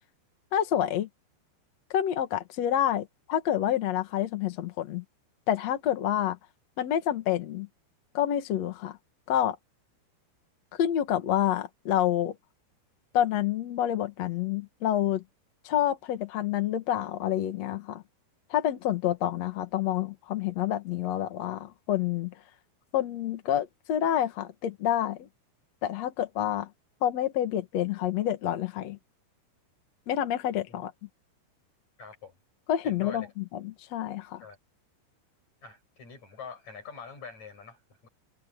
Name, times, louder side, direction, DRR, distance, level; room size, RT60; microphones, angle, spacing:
voice 1, 0.5-1.1 1.9-5.0 5.5-6.4 6.8-7.7 8.1-9.0 9.3-9.6 10.7-12.3 13.1-15.2 15.6-18.0 18.5-22.3 22.9-25.3 25.8-26.7 27.0-29.0 30.1-30.9 32.7-33.3 33.6-34.4, left 11 dB, 70° left, 1.6 m, -28 dB
voice 2, 32.0-32.4 32.8-33.3 34.4-34.6 35.6-38.1, left 5 dB, 35° left, 8.5 m, -45 dB
omnidirectional pair, 5.4 m